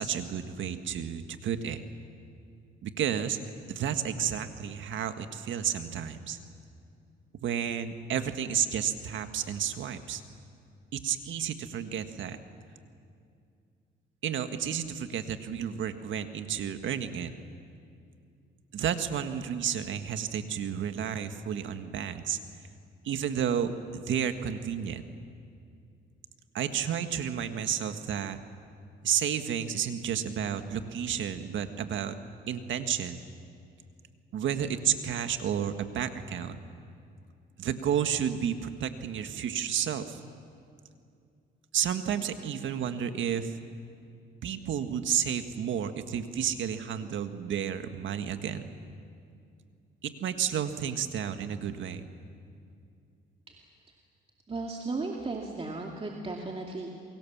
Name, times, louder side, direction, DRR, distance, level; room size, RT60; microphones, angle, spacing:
voice 1, 0.0-1.8 2.8-3.4 3.7-6.4 7.4-10.2 10.9-12.4 14.2-17.3 18.7-22.4 23.0-25.0 26.5-28.4 29.0-32.2 32.5-33.2 34.3-36.6 37.6-40.2 41.7-43.5 44.4-48.7 50.0-52.1, right 8 dB, 70° right, 8 dB, 1.7 m, -31 dB
voice 2, 54.5-56.9, right 3 dB, 30° right, 0 dB, 2.5 m, -35 dB
28.5 x 23.5 x 7.4 m, 2.4 s
cardioid pair, 90°, 20 cm